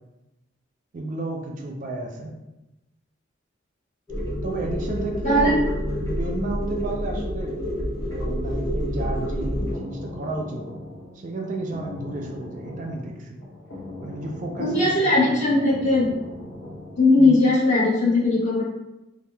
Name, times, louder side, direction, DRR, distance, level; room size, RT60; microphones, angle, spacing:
voice 1, 0.9-2.3 4.4-5.6 6.0-10.6 11.2-13.4 14.0-15.6 17.2-17.4, right 2 dB, 45° right, 2 dB, 0.3 m, -32 dB
sound 1, 4.1-9.7, equal, 15° left, 1.0 m, -28 dB
sound 2, 9.4-17.1, left 1 dB, 85° left, 0.7 m, -40 dB
voice 2, 14.6-16.1 17.0-18.6, left 2 dB, 40° left, -7 dB, 1.0 m, -19 dB
2.7 x 2.0 x 3.2 m, 0.99 s
head